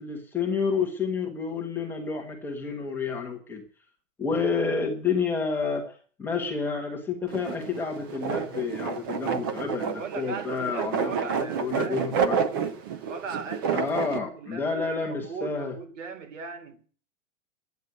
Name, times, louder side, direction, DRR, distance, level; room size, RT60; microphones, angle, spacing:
voice 1, 0.0-3.6 4.2-5.9 6.2-12.5 13.7-15.8, left 5 dB, 5° left, 1.1 m, -29 dB
sound 1, 7.3-14.2, right 6 dB, 15° right, 0.6 m, -29 dB
voice 2, 9.8-12.1 13.0-13.9 14.3-16.8, right 5 dB, 70° right, 3.2 m, -38 dB
12.0 x 9.4 x 9.6 m
supercardioid pair, 180°, 39 cm